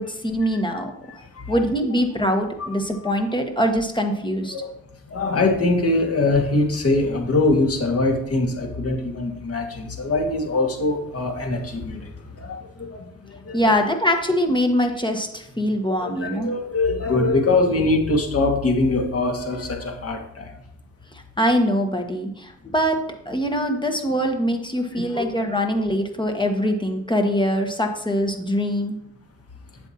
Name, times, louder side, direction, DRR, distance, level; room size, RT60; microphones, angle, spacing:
voice 1, 0.0-0.9 1.5-4.5 13.5-16.5 21.1-23.0 23.2-29.0, equal, 15° left, 3 dB, 1.3 m, -23 dB
voice 2, 1.1-1.6 2.6-3.1 4.5-4.7 5.1-12.1 12.4-13.1 13.5-13.8 16.0-20.5 24.9-25.3, left 2 dB, 40° left, 2 dB, 2.0 m, -23 dB
7.9 x 7.1 x 2.9 m, 0.77 s
supercardioid pair, 55°, 35 cm